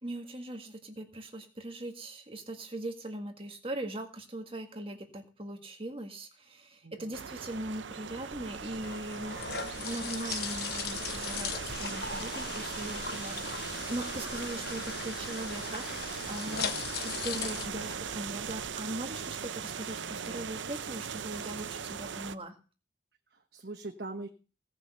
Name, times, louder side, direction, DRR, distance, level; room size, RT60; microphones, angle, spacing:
voice 1, 0.0-16.8 17.0-22.6, right 1 dB, 30° right, 5 dB, 1.9 m, -40 dB
voice 2, 6.8-7.2 16.5-17.0 23.3-24.3, right 2 dB, 55° right, 4 dB, 1.2 m, -43 dB
sound 1, 7.1-22.4, right 7 dB, 80° right, 0.7 m, -39 dB
sound 2, 8.3-18.7, left 6 dB, 55° left, 1.2 m, -39 dB
17.5 x 6.2 x 8.0 m, 0.36 s
head